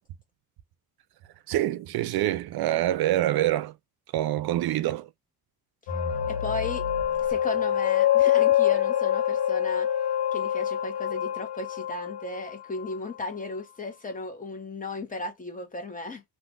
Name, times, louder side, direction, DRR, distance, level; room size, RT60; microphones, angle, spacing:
voice 1, 1.5-3.7 4.1-5.1, right 14 dB, 70° right, 0.5 m, -25 dB
sound 1, 5.9-13.2, left 10 dB, 85° left, 1.0 m, -25 dB
voice 2, 6.3-6.9 7.2-9.9 10.3-16.2, left 2 dB, 20° left, 1.0 m, -36 dB
2.5 x 2.4 x 3.6 m
cardioid pair, 105°, 39 cm